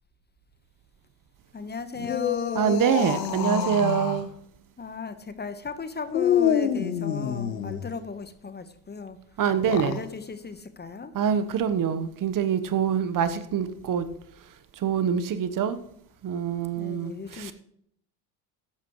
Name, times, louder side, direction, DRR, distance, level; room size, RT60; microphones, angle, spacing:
voice 1, 1.5-2.8 4.8-9.2 9.7-11.1 16.8-17.5, left 4 dB, 20° left, 1.2 m, -36 dB
sound 1, 2.0-4.2 6.1-7.9 9.5-10.0, left 9 dB, 90° left, 1.1 m, -27 dB
voice 2, 2.5-4.3 9.4-10.0 11.1-14.0 14.8-15.8 16.2-17.5, right 8 dB, 45° right, 1.2 m, -25 dB
14.5 x 11.5 x 3.2 m
hypercardioid pair, 65°, 47 cm